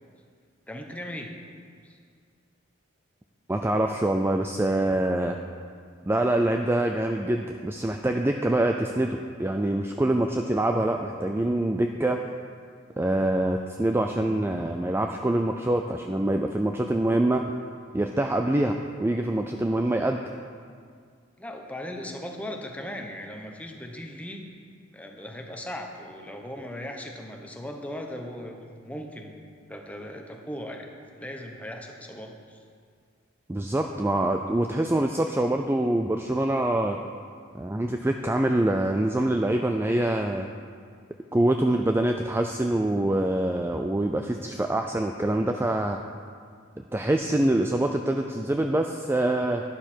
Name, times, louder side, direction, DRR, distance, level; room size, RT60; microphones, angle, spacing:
voice 1, 0.7-1.3 1.8-2.0 21.4-24.4 24.9-29.4 29.7-30.9 31.2-32.6, left 1 dB, 5° left, 2 dB, 1.0 m, -38 dB
voice 2, 3.5-5.4 6.1-12.2 13.0-17.5 17.9-20.2 33.5-37.0 37.5-40.5 41.3-46.0 46.9-49.6, right 1 dB, 10° right, 4 dB, 0.4 m, -25 dB
12.0 x 11.0 x 4.5 m, 2.1 s
head